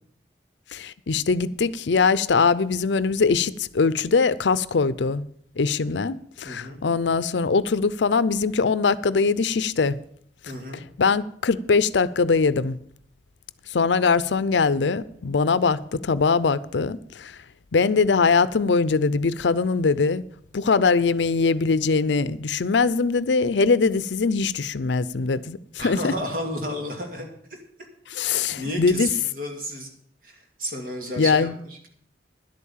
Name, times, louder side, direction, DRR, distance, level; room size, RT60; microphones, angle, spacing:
voice 1, 0.7-5.2 5.6-10.0 11.0-12.8 13.7-17.4 17.7-20.2 20.5-26.1 28.1-29.1 31.2-31.6, left 4 dB, 85° left, 0.6 m, -22 dB
voice 2, 6.4-6.8 10.5-10.8 25.8-27.6 28.2-29.9 30.2-31.8, equal, 50° right, 2.6 m, -32 dB
11.0 x 8.5 x 7.2 m
head